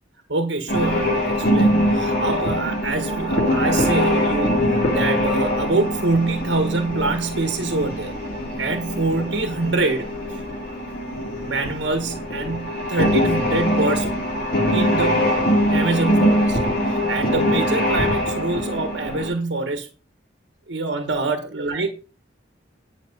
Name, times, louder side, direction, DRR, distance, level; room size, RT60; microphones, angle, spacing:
voice 1, 0.3-8.1 8.6-10.4 11.4-14.1 14.7-15.4 15.7-16.6 16.9-19.9 20.7-21.9, right 3 dB, 70° right, 6 dB, 1.5 m, -25 dB
sound 1, 0.7-19.3, equal, 50° left, 3.3 m, -22 dB
10.5 x 6.0 x 5.5 m, 0.35 s
head